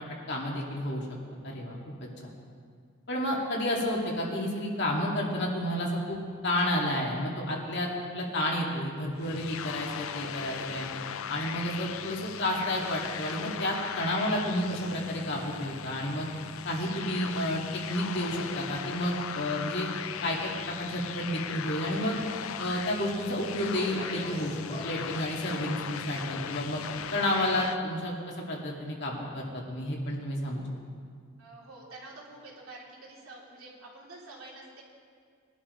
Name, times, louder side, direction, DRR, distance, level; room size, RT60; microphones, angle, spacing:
voice 1, 0.3-1.0 1.4-2.3 3.1-6.2 6.4-7.9 8.1-10.9 11.3-16.3 16.6-17.6 17.9-19.9 20.2-22.2 22.6-26.8 27.1-30.6, left 1 dB, 55° left, -2 dB, 2.3 m, -31 dB
sound 1, 9.2-27.8, left 8 dB, 85° left, 0.5 m, -38 dB
Speech, 23.3-27.5, left 1 dB, 35° left, 2.4 m, -45 dB
voice 2, 31.4-34.8, right 2 dB, 90° right, -4 dB, 3.3 m, -48 dB
21.5 x 11.5 x 3.2 m, 2.1 s
head